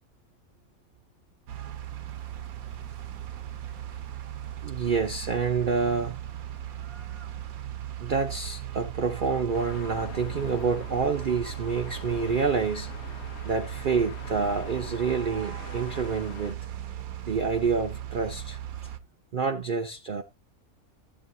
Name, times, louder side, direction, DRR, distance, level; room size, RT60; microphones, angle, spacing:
sound 1, 1.5-19.0, right 11 dB, 75° right, 1.2 m, -37 dB
voice 1, 4.6-6.2 8.0-12.9 13.4-16.7 17.3-18.6 19.3-20.2, right 5 dB, 45° right, 0.7 m, -28 dB
sound 2, 9.5-16.5, left 7 dB, 55° left, 0.9 m, -44 dB
12.5 x 8.4 x 2.6 m
omnidirectional pair, 1.6 m